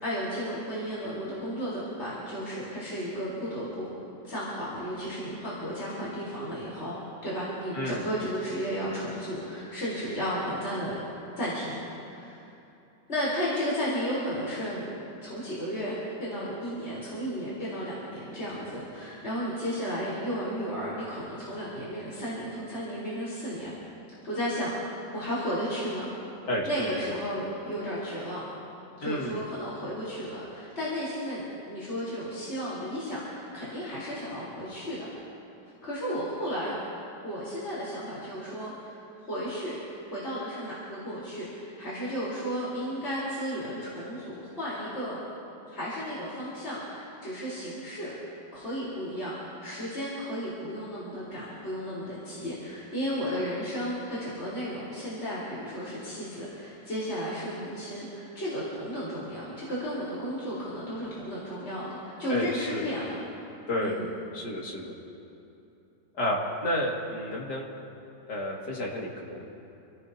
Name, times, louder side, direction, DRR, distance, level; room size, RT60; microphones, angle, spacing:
voice 1, 0.0-3.9 4.2-6.9 7.2-11.0 11.4-11.8 12.1-12.4 13.1-14.8 15.2-23.7 24.2-26.1 26.6-28.4 29.0-35.1 35.8-36.7 37.2-39.8 40.1-45.2 45.6-48.1 48.5-63.2 63.8-64.1, equal, 35° left, -9 dB, 4.3 m, -33 dB
voice 2, 26.4-27.0 29.0-29.4 62.3-62.9 63.7-64.0 64.3-64.9 66.1-67.6 68.2-69.5, left 1 dB, 65° left, -3 dB, 2.9 m, -31 dB
29.0 x 17.0 x 2.9 m, 2.8 s
omnidirectional pair, 1.9 m